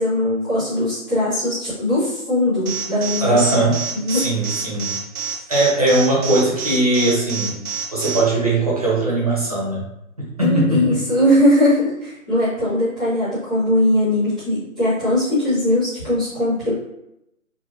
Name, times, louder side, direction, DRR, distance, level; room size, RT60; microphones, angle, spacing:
voice 1, 0.0-3.6 4.0-4.3 10.4-16.7, left 1 dB, 5° left, -23 dB, 1.0 m, -20 dB
Alarm, 2.7-8.2, right 6 dB, 75° right, 1.2 m, -27 dB
voice 2, 3.2-3.8 4.1-4.9 5.5-7.5 7.9-9.8 10.4-11.0, right 2 dB, 25° right, -6 dB, 0.7 m, -19 dB
4.4 x 2.8 x 2.8 m, 0.84 s
hypercardioid pair, 180°, 43 cm